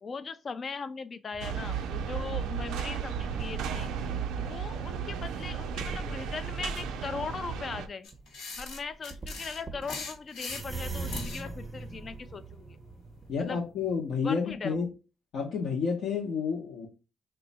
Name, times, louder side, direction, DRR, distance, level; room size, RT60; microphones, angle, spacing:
voice 1, 0.0-3.9 4.4-8.1 8.6-12.8 13.4-13.6 14.2-14.9, left 5 dB, 40° left, 0.3 m, -39 dB
sound 1, 1.3-3.4 4.0-4.6 5.1-5.2 5.8-7.4 8.1-8.3 8.8-8.9 9.1-14.2 14.5-14.6, right 3 dB, 25° right, 0.5 m, -42 dB
sound 2, 1.4-7.9, right 7 dB, 90° right, 0.4 m, -34 dB
sound 3, 8.0-11.5, left 4 dB, 85° left, 1.1 m, -40 dB
voice 2, 13.3-14.9 15.3-16.9, left 5 dB, 70° left, 0.7 m, -30 dB
3.0 x 2.2 x 4.0 m
cardioid pair, 90°, 0 cm